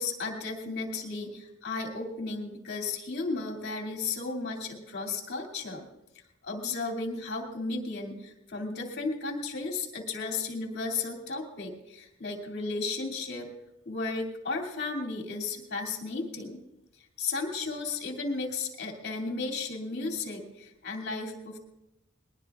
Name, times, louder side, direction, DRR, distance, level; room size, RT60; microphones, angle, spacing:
voice 1, 0.0-5.9 6.4-13.5 13.9-16.6 17.2-21.6, left 3 dB, 55° left, 2 dB, 2.5 m, -34 dB
21.0 x 20.5 x 2.4 m, 0.89 s
head